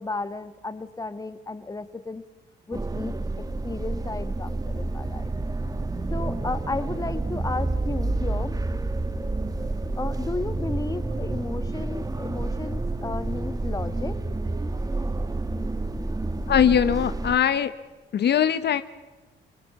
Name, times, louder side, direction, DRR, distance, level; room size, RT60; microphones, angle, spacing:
voice 1, 0.0-2.2 2.7-5.3 6.1-8.5 10.0-14.2, left 3 dB, 20° left, 11 dB, 1.5 m, -33 dB
sound 1, 2.7-17.4, right 2 dB, 20° right, 1.1 m, -29 dB
voice 2, 16.5-17.7 18.1-18.8, left 9 dB, 60° left, 12 dB, 0.9 m, -21 dB
27.5 x 21.0 x 7.0 m, 1.2 s
cardioid pair, 90°, 20 cm